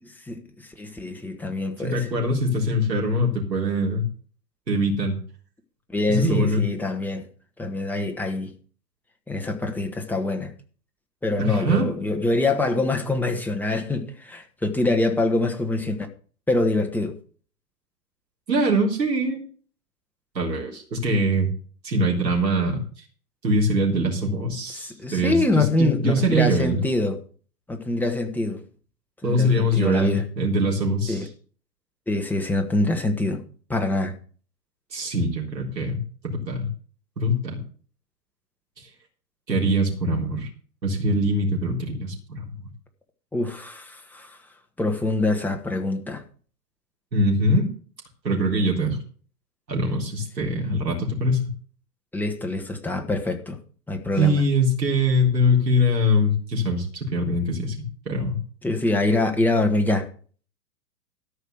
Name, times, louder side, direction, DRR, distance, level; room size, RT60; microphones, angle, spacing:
voice 1, 0.0-2.1 5.9-7.3 7.6-8.5 9.3-10.5 11.2-16.1 16.5-17.2 24.7-27.2 27.7-28.6 29.2-30.3 31.1-31.3 32.1-33.4 33.7-34.2 43.3-44.4 44.8-46.2 52.1-53.6 53.9-54.4 58.6-60.1, left 2 dB, 5° left, 1.5 m, -25 dB
voice 2, 1.8-4.0 4.7-5.2 6.1-6.6 11.4-11.9 18.5-19.4 20.3-21.5 21.8-23.0 23.4-26.8 29.2-31.3 34.9-36.0 36.2-36.7 37.2-37.6 38.8-38.9 39.5-40.5 40.8-42.4 47.1-47.6 48.2-49.0 49.7-51.5 54.2-57.8 58.1-58.4, equal, 85° right, 4.0 m, -23 dB
13.0 x 5.6 x 8.0 m
hypercardioid pair, 120°, 49 cm